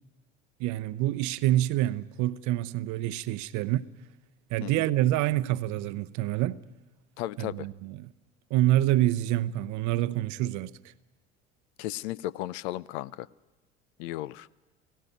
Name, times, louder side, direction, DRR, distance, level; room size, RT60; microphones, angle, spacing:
voice 1, 0.6-3.8 4.5-6.6 7.4-8.1 8.5-10.7, right 14 dB, 55° right, 0.8 m, -27 dB
voice 2, 7.2-7.7 11.8-13.3 14.0-14.5, left 15 dB, 60° left, 0.6 m, -35 dB
18.0 x 16.0 x 9.3 m
figure-of-eight pair, 65°, 36 cm